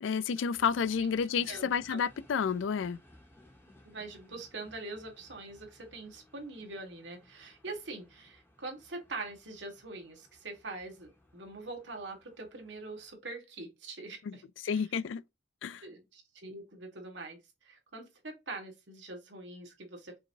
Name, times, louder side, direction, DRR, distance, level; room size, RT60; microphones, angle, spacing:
voice 1, 0.0-3.0 14.2-14.3 14.6-15.2 15.6-15.8, left 6 dB, 80° left, 0.3 m, -30 dB
sound 1, 0.5-13.1, left 1 dB, 10° left, 1.3 m, -61 dB
voice 2, 1.5-2.0 3.9-14.8 15.8-17.4 17.7-20.2, right 3 dB, 70° right, 1.6 m, -44 dB
5.4 x 2.8 x 2.6 m
head